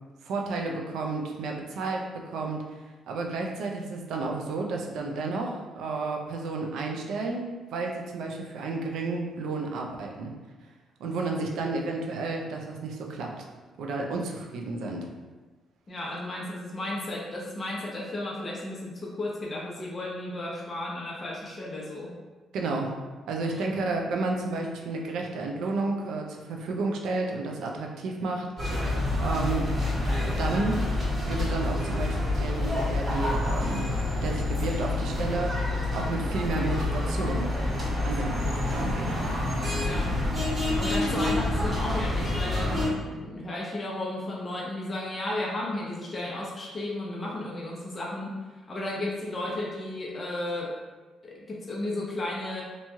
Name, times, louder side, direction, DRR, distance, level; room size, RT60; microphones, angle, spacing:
voice 1, 0.2-2.6 3.1-10.3 11.0-13.5 13.8-15.1 22.5-22.9 23.3-28.8 29.2-29.7 30.4-30.9 31.2-33.9 34.2-37.5 38.0-39.2, right 3 dB, 80° right, 1 dB, 0.4 m, -31 dB
voice 2, 15.9-22.1 23.5-23.7 39.7-40.1 40.8-50.7 51.2-52.6, left 1 dB, 30° left, -4 dB, 0.6 m, -34 dB
sound 1, 28.6-42.9, left 2 dB, 35° right, 1.4 m, -28 dB
3.0 x 2.6 x 2.3 m, 1.3 s
cardioid pair, 90°, 0 cm